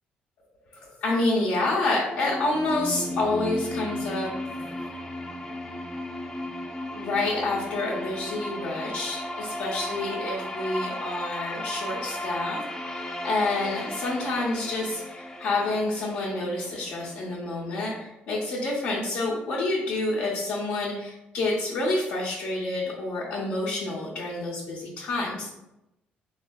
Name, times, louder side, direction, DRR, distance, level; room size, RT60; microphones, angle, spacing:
voice 1, 0.7-4.3 4.6-4.9 6.9-12.6 12.9-25.5, left 2 dB, 75° left, -6 dB, 0.6 m, -28 dB
sound 1, 1.6-17.5, left 1 dB, 15° left, 0.3 m, -35 dB
3.2 x 2.4 x 2.2 m, 0.88 s
supercardioid pair, 80°, 4 cm